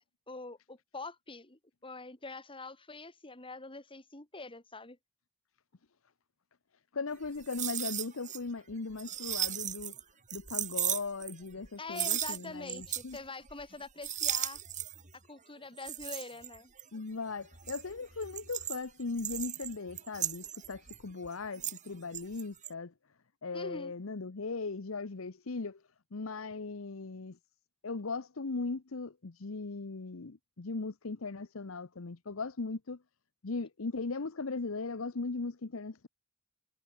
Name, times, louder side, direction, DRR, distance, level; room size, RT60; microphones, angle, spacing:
voice 1, 0.0-5.0 11.8-14.6 15.3-16.7 23.5-23.9, left 3 dB, 25° left, 3.6 m, -45 dB
voice 2, 6.9-9.9 10.3-13.2 16.9-22.9 23.4-25.8 26.1-27.4 27.8-33.0 33.4-36.1, left 3 dB, 70° left, 0.9 m, -38 dB
sound 1, 7.3-8.4 8.7-10.0 10.3-11.7 11.9-13.2 13.5-13.7 14.0-15.1 15.8-17.0 17.4-21.9 22.1-22.7, right 11 dB, 35° right, 2.7 m, -36 dB
head